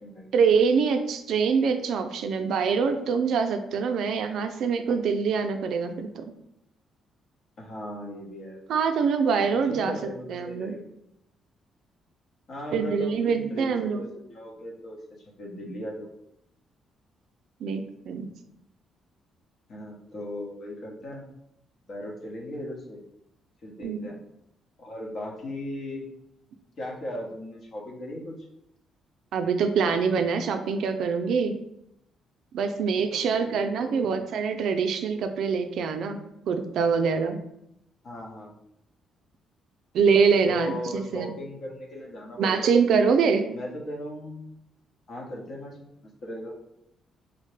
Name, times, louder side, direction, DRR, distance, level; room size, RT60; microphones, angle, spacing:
voice 1, 0.3-6.2 8.7-10.0 10.3-10.7 12.7-14.1 17.6-18.3 23.8-24.1 29.3-31.6 32.5-36.2 36.5-37.4 39.9-41.3 42.4-43.5, right 5 dB, 75° right, 7 dB, 0.4 m, -24 dB
voice 2, 7.6-8.6 9.7-10.8 12.5-15.0 15.4-16.1 19.7-21.2 21.9-23.0 23.6-24.2 24.8-26.1 26.8-28.4 33.1-34.2 38.0-38.5 40.4-42.8 43.5-44.4 45.1-45.9 46.2-46.6, left 1 dB, 55° left, -1 dB, 0.9 m, -37 dB
3.9 x 2.1 x 3.2 m, 0.78 s
cardioid pair, 90°, 0 cm